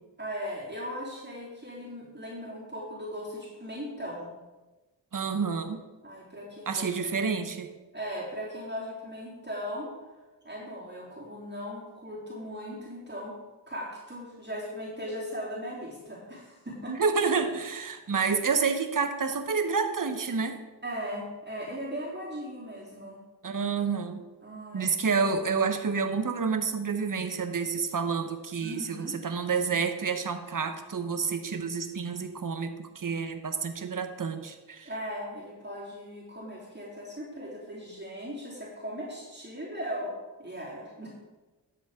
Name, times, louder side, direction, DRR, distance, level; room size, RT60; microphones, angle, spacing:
voice 1, 0.2-4.3 6.0-7.0 7.9-9.9 10.4-13.3 13.7-16.9 20.8-23.2 24.4-24.9 28.6-29.3 34.8-40.1 40.4-41.1, equal, 25° right, -6 dB, 3.4 m, -38 dB
voice 2, 5.1-5.8 6.7-7.7 16.9-20.6 23.4-24.3 24.7-34.9, right 5 dB, 50° right, 8 dB, 1.1 m, -29 dB
13.0 x 7.4 x 3.7 m, 1.2 s
cardioid pair, 50°, 42 cm